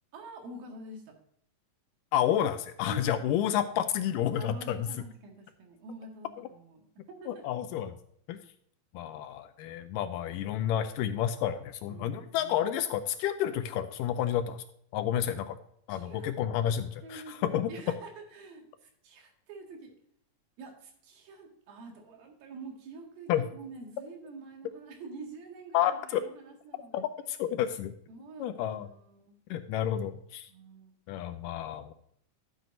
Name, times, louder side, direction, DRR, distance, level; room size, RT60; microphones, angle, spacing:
voice 1, 0.1-1.2 2.9-3.3 4.4-7.5 9.0-9.1 11.9-12.5 15.9-16.3 17.0-19.9 20.6-27.0 28.1-29.4 30.5-30.9, right 3 dB, 85° right, 2 dB, 3.7 m, -47 dB
voice 2, 2.1-4.9 7.3-7.9 8.3-8.4 8.9-14.6 14.9-15.6 15.9-17.7 23.3-23.5 25.7-26.2 26.9-27.9 28.4-28.9 29.5-30.5 31.1-31.9, left 10 dB, 80° left, 10 dB, 2.0 m, -30 dB
12.0 x 7.6 x 2.6 m, 0.68 s
omnidirectional pair, 4.1 m